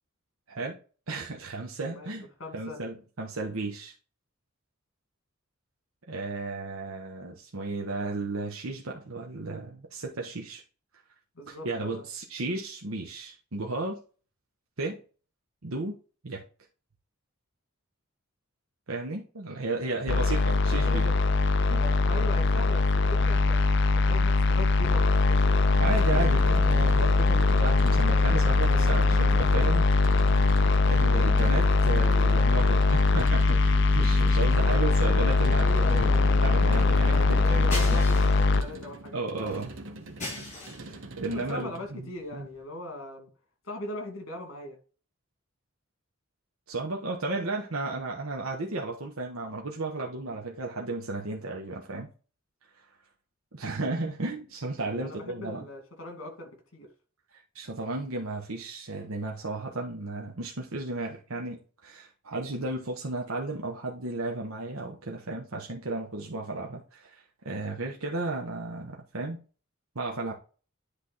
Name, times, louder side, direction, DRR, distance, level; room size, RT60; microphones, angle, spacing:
voice 1, 1.1-2.3 2.5-3.9 6.1-10.6 11.5-14.0 14.8-15.0 15.6-16.0 16.2-16.4 18.9-21.0 21.7-21.8 25.8-36.1 36.4-38.0 39.1-39.7 40.8-42.5 46.7-52.1 52.7-52.9 53.5-55.7 57.3-69.4 69.9-70.3, right 2 dB, 80° right, 1.1 m, -34 dB
voice 2, 2.4-2.8 11.4-12.0 20.1-20.3 20.7-21.2 21.8-23.6 23.9-25.7 26.1-26.3 35.6-36.2 37.1-39.5 41.3-43.3 43.6-44.8 55.0-56.9, left 1 dB, 70° left, 2.5 m, -40 dB
sound 1, 20.1-38.6, left 3 dB, 55° left, 0.5 m, -22 dB
sound 2, 23.0-42.7, left 1 dB, 35° left, 3.6 m, -48 dB
sound 3, 25.8-41.9, right 2 dB, 65° right, 1.1 m, -44 dB
10.0 x 3.4 x 4.1 m
head